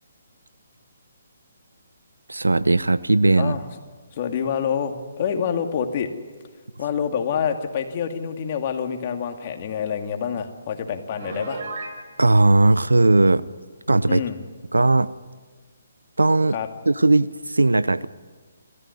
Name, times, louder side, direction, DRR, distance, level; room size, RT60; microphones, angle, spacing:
voice 1, 2.3-3.6 12.2-13.4 13.9-14.2 14.7-15.1 16.2-16.6 16.9-18.1, right 2 dB, 90° right, 17 dB, 0.8 m, -18 dB
voice 2, 4.1-6.1 6.8-11.6 14.1-14.4 16.5-16.7, left 7 dB, 40° left, 5 dB, 2.3 m, -27 dB
Piano, 11.2-12.0, right 2 dB, 50° right, 5.1 m, -33 dB
28.0 x 14.5 x 9.6 m, 1.4 s
figure-of-eight pair, 140°, 0 cm